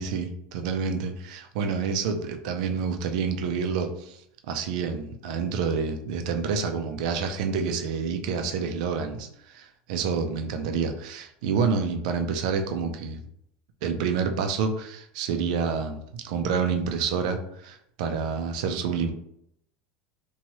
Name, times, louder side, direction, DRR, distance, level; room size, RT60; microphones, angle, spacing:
voice 1, 0.0-4.2 4.5-13.2 13.8-19.1, right 5 dB, 70° right, 6 dB, 0.4 m, -28 dB
2.8 x 2.2 x 2.9 m, 0.73 s
cardioid pair, 175°, 4 cm